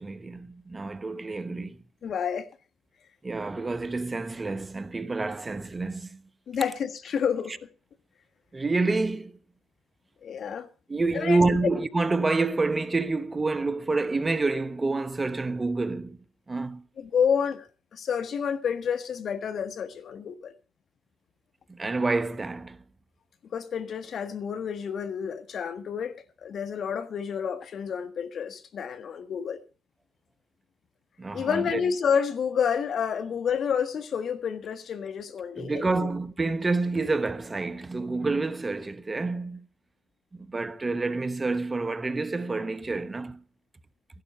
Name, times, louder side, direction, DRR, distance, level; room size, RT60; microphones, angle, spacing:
voice 1, 0.0-1.8 3.2-6.2 8.5-9.4 10.9-16.2 16.5-16.8 21.7-22.8 31.2-31.8 35.6-39.6 40.3-43.4, right 3 dB, 30° right, 1.1 m, -28 dB
voice 2, 2.0-2.5 6.5-7.5 10.2-10.7 11.1-11.4 17.0-20.5 23.5-29.6 31.3-36.1, left 7 dB, 65° left, 1.5 m, -29 dB
15.5 x 11.5 x 5.5 m
supercardioid pair, 60°, 0 cm